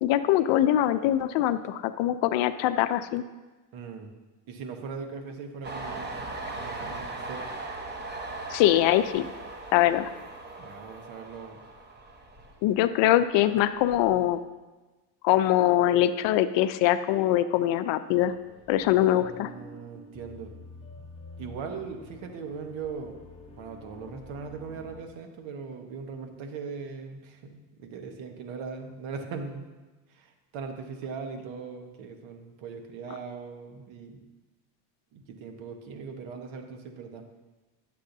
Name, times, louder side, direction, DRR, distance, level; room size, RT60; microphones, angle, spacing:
voice 1, 0.0-3.2 8.5-9.3 9.7-10.1 12.6-14.4 15.2-18.3 18.7-19.5, left 13 dB, 60° left, 11 dB, 0.6 m, -23 dB
voice 2, 3.7-4.1 4.5-6.3 6.5-7.5 10.6-11.6 18.9-20.5 21.4-23.1 23.6-29.7 30.1-34.2 35.1-37.2, right 5 dB, 65° right, 5 dB, 1.3 m, -40 dB
Train, 5.6-13.1 13.4-14.3, right 2 dB, 20° right, 1.0 m, -39 dB
sound 1, 18.2-25.0, left 2 dB, 10° left, 1.1 m, -48 dB
10.0 x 7.5 x 2.7 m, 1.2 s
supercardioid pair, 105°, 49 cm